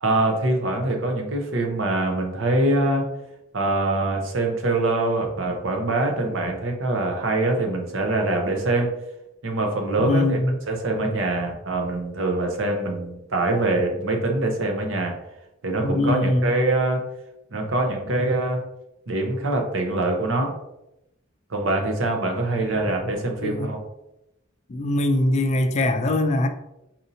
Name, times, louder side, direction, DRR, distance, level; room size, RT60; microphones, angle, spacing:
voice 1, 0.0-3.1 3.5-8.9 9.4-10.4 10.7-15.2 15.6-17.0 17.5-18.6 19.1-20.5 21.5-23.8, right 2 dB, 75° right, 3 dB, 0.7 m, -24 dB
voice 2, 10.0-10.6 15.8-16.5 23.4-23.7 24.7-26.5, left 1 dB, 35° left, 7 dB, 0.3 m, -22 dB
4.1 x 2.7 x 2.6 m, 0.88 s
head